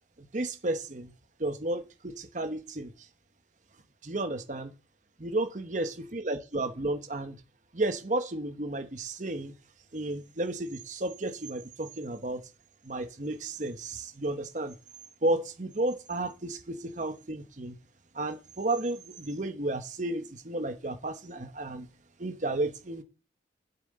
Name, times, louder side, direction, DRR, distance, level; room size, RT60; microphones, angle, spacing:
voice 1, 0.3-1.1 1.4-2.9 4.0-4.7 5.2-7.4 7.7-9.5 9.9-12.4 12.8-14.7 15.2-17.8 18.1-21.9 22.2-23.0, right 2 dB, 40° right, 1.0 m, -32 dB
7.6 x 6.9 x 7.7 m
head